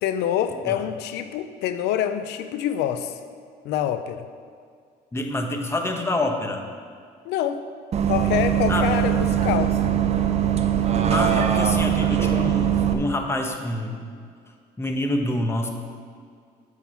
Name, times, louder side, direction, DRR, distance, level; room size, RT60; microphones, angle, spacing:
voice 1, 0.0-3.2 3.6-4.2 7.3-7.6 8.1-9.7, left 10 dB, 85° left, 10 dB, 0.5 m, -26 dB
voice 2, 5.1-6.6 8.7-9.0 11.1-14.1 14.8-15.7, left 1 dB, 15° left, 3 dB, 0.9 m, -27 dB
Bus, 7.9-12.9, right 9 dB, 40° right, 0.7 m, -21 dB
7.2 x 6.2 x 5.7 m, 2.2 s
cardioid pair, 110°, 17 cm